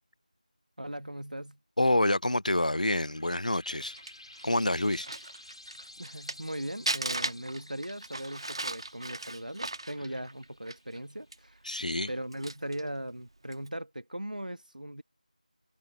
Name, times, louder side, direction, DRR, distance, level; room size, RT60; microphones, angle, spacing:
voice 1, 0.8-1.6 6.0-11.6 12.1-15.0, right 1 dB, 80° right, 1.8 m, -39 dB
voice 2, 1.8-3.9 4.4-5.1 11.7-12.1, left 1 dB, 70° left, 0.6 m, -27 dB
sound 1, 2.2-11.4, left 1 dB, 45° left, 5.1 m, -53 dB
Crumpling crinkling, 3.5-6.5 6.8-11.0 11.3-11.4 12.0-12.9 13.4-13.7, right 2 dB, 40° right, 1.8 m, -37 dB
figure-of-eight pair, 170°, 4 cm